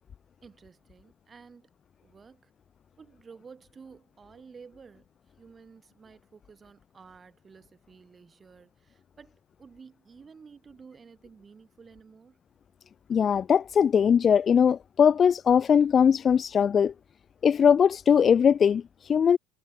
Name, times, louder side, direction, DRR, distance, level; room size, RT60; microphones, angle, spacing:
voice 1, 0.4-1.7 2.0-2.5 3.0-5.1 5.4-12.4, right 5 dB, 20° right, 7.7 m, -52 dB
voice 2, 13.1-16.9 17.4-19.4, left 7 dB, 30° left, 0.3 m, -21 dB
supercardioid pair, 125°, 0 cm